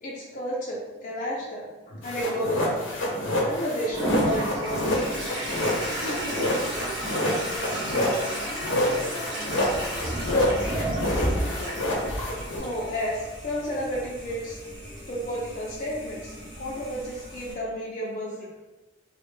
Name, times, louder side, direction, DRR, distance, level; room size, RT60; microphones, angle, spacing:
voice 1, 0.0-5.0 12.6-14.6 15.1-18.5, equal, 40° left, -5 dB, 0.3 m, -32 dB
sound 1, 2.0-12.6, left 1 dB, 85° left, 0.6 m, -28 dB
Toilet flush, 3.9-17.5, equal, 25° right, 0.6 m, -32 dB
voice 2, 6.1-12.2, equal, 75° right, -3 dB, 0.6 m, -40 dB
2.1 x 2.0 x 3.0 m, 1.1 s
head